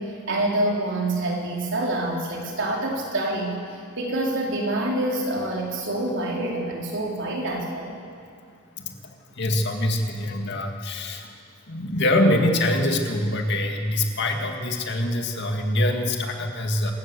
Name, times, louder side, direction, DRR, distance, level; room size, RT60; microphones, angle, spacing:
voice 1, 0.0-8.0, right 1 dB, 60° right, -2 dB, 4.3 m, -27 dB
voice 2, 9.3-11.3 11.7-16.9, left 1 dB, 55° left, 3 dB, 2.2 m, -24 dB
26.5 x 16.5 x 7.0 m, 2.3 s
head